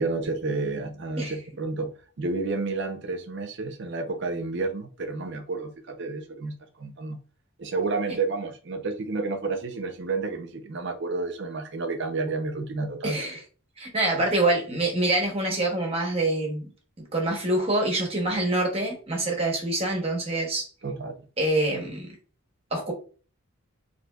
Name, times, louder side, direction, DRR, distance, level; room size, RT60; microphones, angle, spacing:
voice 1, 0.0-7.2 7.6-13.2 20.8-21.3, right 3 dB, 55° right, 0.6 m, -30 dB
voice 2, 13.0-13.4 13.8-16.6 17.1-20.7 21.4-22.1 22.7-22.9, right 2 dB, 25° right, 0.9 m, -25 dB
4.1 x 2.7 x 2.2 m
head